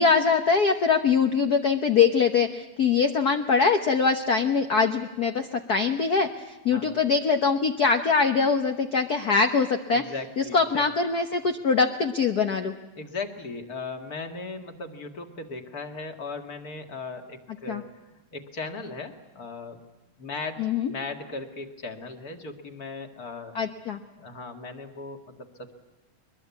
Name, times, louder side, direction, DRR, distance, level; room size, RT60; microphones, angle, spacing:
voice 1, 0.0-10.0 10.4-12.7 17.7-17.8 20.6-20.9 23.5-24.0, left 5 dB, 65° left, 6 dB, 0.9 m, -23 dB
voice 2, 9.9-10.8 13.0-19.8 20.2-20.6 20.9-23.6 24.2-25.7, left 3 dB, 35° left, 6 dB, 2.0 m, -37 dB
22.5 x 21.5 x 8.3 m, 1.1 s
omnidirectional pair, 3.4 m